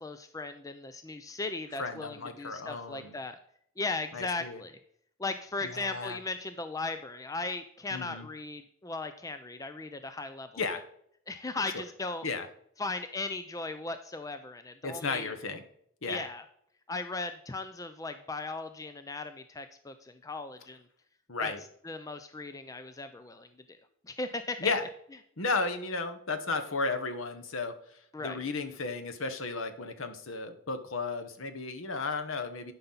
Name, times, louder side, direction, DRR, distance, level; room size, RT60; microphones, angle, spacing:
voice 1, 0.0-3.4 3.8-4.8 5.2-10.8 11.3-12.3 12.8-15.3 16.1-16.4 16.9-20.8 21.4-21.5 21.8-23.8 24.1-24.7 28.1-28.4, left 3 dB, 15° left, 9 dB, 0.4 m, -37 dB
voice 2, 1.8-3.2 4.1-4.6 5.6-6.2 7.9-8.3 10.6-10.8 12.2-12.5 14.8-15.6 16.0-16.2 21.3-21.6 24.6-24.8 25.4-27.7 28.2-32.7, left 4 dB, 70° left, 8 dB, 1.1 m, -34 dB
11.5 x 5.6 x 4.0 m, 0.68 s
head